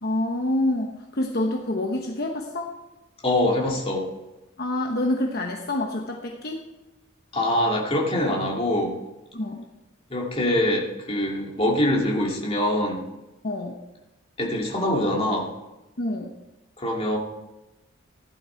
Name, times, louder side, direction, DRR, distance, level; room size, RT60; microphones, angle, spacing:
voice 1, 0.0-2.7 4.6-6.6 9.3-9.6 13.4-13.8 16.0-16.3, left 1 dB, 50° left, 1 dB, 1.1 m, -27 dB
voice 2, 3.2-4.1 7.3-9.0 10.1-13.0 14.4-15.5 16.8-17.2, left 1 dB, 30° left, -2 dB, 2.3 m, -24 dB
15.5 x 11.0 x 4.5 m, 1.0 s
head